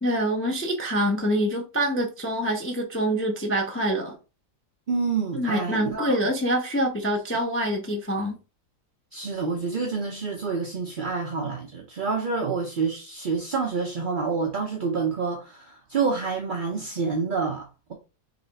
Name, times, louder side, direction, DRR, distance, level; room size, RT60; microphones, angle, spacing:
voice 1, 0.0-4.2 5.3-8.4, equal, 20° left, 0.3 m, -25 dB
voice 2, 4.9-6.2 9.1-17.9, right 5 dB, 50° right, 0.6 m, -28 dB
4.1 x 3.2 x 4.0 m
omnidirectional pair, 1.8 m